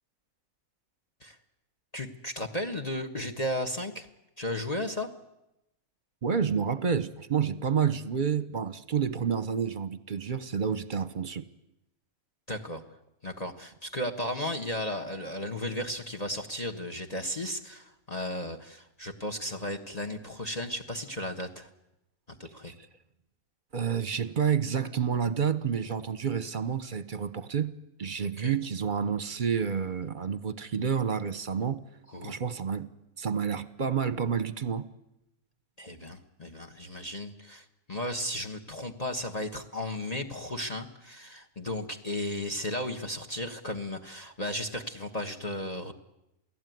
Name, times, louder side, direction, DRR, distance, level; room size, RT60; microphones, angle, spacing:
voice 1, 1.9-4.1 4.4-5.1 12.5-12.8 13.2-21.7 22.3-22.7 28.4-28.6 32.1-32.3 35.8-45.9, left 1 dB, 30° left, 1.4 m, -35 dB
voice 2, 6.2-11.5 23.7-27.7 28.0-31.8 32.2-32.9 33.2-34.8, right 7 dB, 40° right, 1.1 m, -29 dB
28.5 x 17.5 x 9.4 m
omnidirectional pair, 1.5 m